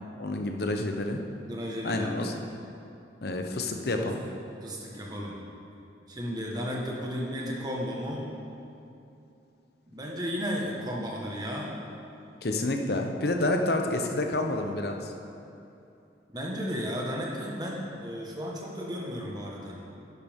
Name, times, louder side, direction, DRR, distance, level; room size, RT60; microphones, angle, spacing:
voice 1, 0.2-1.2 1.8-2.4 3.2-4.2 12.4-15.1, left 2 dB, 55° left, 4 dB, 0.8 m, -29 dB
voice 2, 1.4-2.2 4.0-4.1 4.6-5.4 6.1-8.3 9.9-11.8 16.3-19.8, equal, 20° right, -2 dB, 1.4 m, -34 dB
10.5 x 10.5 x 3.6 m, 2.7 s
head